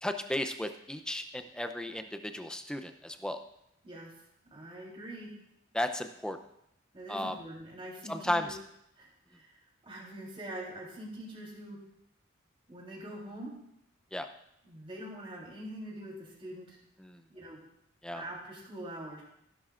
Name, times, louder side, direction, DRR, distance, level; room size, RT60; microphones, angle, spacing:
voice 1, 0.0-3.4 5.7-6.4 7.1-7.3 8.1-8.5 14.1-14.3 17.0-17.2 18.0-18.2, left 1 dB, 5° left, 7 dB, 0.6 m, -34 dB
voice 2, 3.8-4.2 4.5-5.3 6.9-8.5 9.0-11.8 12.7-13.5 14.6-16.8 17.3-17.6 18.1-19.2, right 1 dB, 30° right, -3 dB, 3.6 m, -44 dB
16.0 x 11.0 x 2.5 m, 0.77 s
head